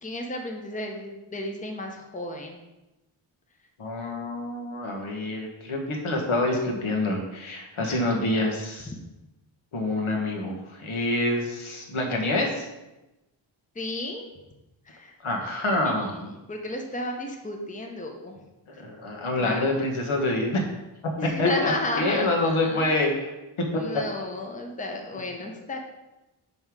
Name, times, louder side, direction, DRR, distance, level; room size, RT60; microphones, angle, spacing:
voice 1, 0.0-2.6 13.8-14.3 14.9-15.1 15.8-16.2 16.5-18.4 19.4-19.8 21.2-22.8 23.7-25.8, left 2 dB, 15° left, 2 dB, 0.8 m, -32 dB
voice 2, 3.8-8.9 9.7-12.6 15.2-16.3 18.8-20.6 21.2-23.3 23.7-24.0, left 2 dB, 80° left, 1 dB, 1.5 m, -27 dB
5.5 x 5.4 x 4.7 m, 1.0 s
wide cardioid pair, 125°, 48 cm